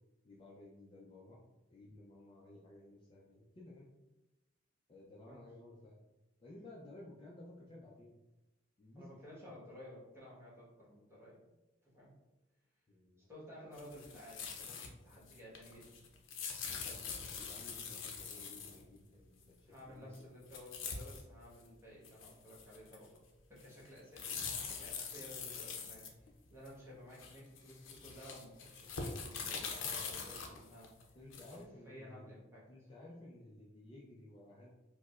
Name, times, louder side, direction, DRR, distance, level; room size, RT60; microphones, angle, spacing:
voice 1, 0.2-1.4 1.7-3.9 4.9-6.0 6.4-8.2 8.8-9.6 12.9-13.3 16.7-20.3 31.1-32.4 32.7-34.7, left 1 dB, 25° left, -4 dB, 0.4 m, -55 dB
voice 2, 8.9-11.4 11.8-12.1 13.2-16.0 16.7-17.1 19.7-23.1 23.5-30.9 31.4-31.6 31.8-32.7, equal, 15° right, -6 dB, 1.1 m, -54 dB
sound 1, 13.7-14.9 15.1-18.8 20.1-20.2 20.5-21.2 21.6-21.7 22.0-23.2 23.6-26.7 27.1-31.6, left 5 dB, 85° left, 0.5 m, -44 dB
4.6 x 2.0 x 2.4 m, 1.0 s
head